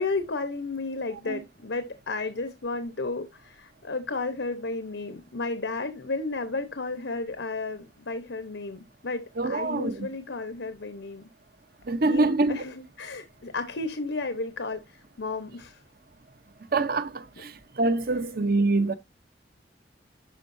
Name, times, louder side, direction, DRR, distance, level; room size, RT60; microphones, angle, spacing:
voice 1, 0.0-11.3 12.1-15.8 17.4-17.5, left 3 dB, 90° left, 1.0 m, -33 dB
voice 2, 9.4-10.1 11.9-12.6 16.7-18.9, right 3 dB, 55° right, 0.8 m, -25 dB
12.0 x 4.6 x 2.6 m
head